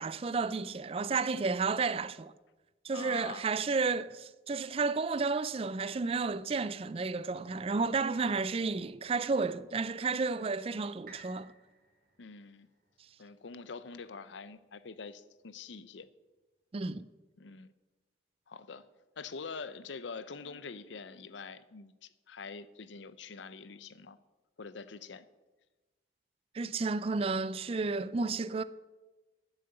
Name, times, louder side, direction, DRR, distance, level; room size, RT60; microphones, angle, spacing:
voice 1, 0.0-2.3 2.8-11.5 16.7-17.1 26.5-28.6, right 4 dB, 30° right, 0.3 m, -32 dB
voice 2, 2.9-3.5 12.2-12.7 13.2-16.1 17.4-17.7 18.5-18.9 19.2-24.2 24.6-25.3, left 4 dB, 75° left, 0.6 m, -45 dB
sound 1, 11.1-15.0 15.6-15.7, right 3 dB, 50° right, 2.2 m, -59 dB
10.5 x 6.7 x 8.0 m
head